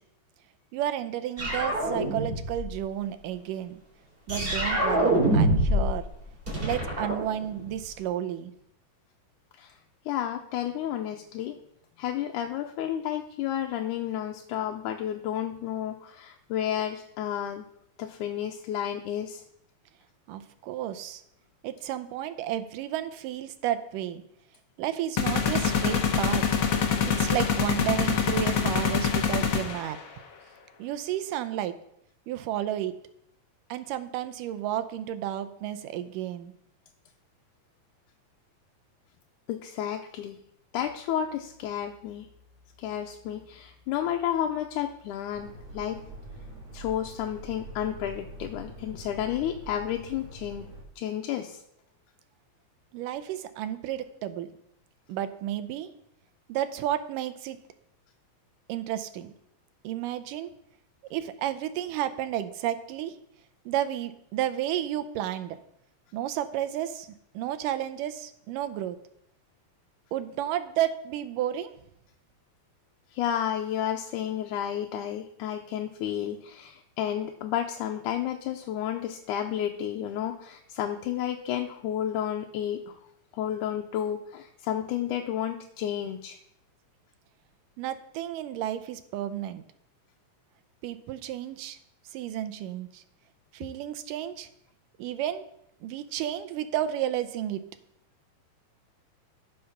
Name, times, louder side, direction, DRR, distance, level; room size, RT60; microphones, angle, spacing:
voice 1, 0.7-3.8 4.3-6.0 6.6-8.5 20.3-21.2 21.6-24.2 24.8-26.4 27.0-30.0 30.8-31.7 32.3-32.9 33.7-36.5 52.9-54.5 55.1-55.9 56.5-57.6 58.7-59.3 59.8-60.5 61.1-63.2 63.7-65.6 66.1-69.0 70.1-71.7 87.8-89.6 90.8-91.8 92.1-93.0 93.5-94.5 95.0-95.5 95.8-97.6, right 11 dB, 85° right, 11 dB, 2.4 m, -32 dB
sound 1, 1.4-2.7 4.3-6.0 6.2-7.8, right 1 dB, 15° right, 3.2 m, -25 dB
voice 2, 10.1-11.6 12.0-17.7 18.0-19.4 39.5-40.4 40.7-42.3 42.8-46.0 46.7-50.7 51.0-51.6 73.1-83.0 83.3-86.4, left 10 dB, 80° left, 3 dB, 2.1 m, -31 dB
sound 2, 25.2-30.0, left 7 dB, 65° left, 1.3 m, -25 dB
sound 3, 45.3-50.8, right 2 dB, 50° right, 3.2 m, -44 dB
14.0 x 5.5 x 5.9 m, 0.75 s
omnidirectional pair, 3.7 m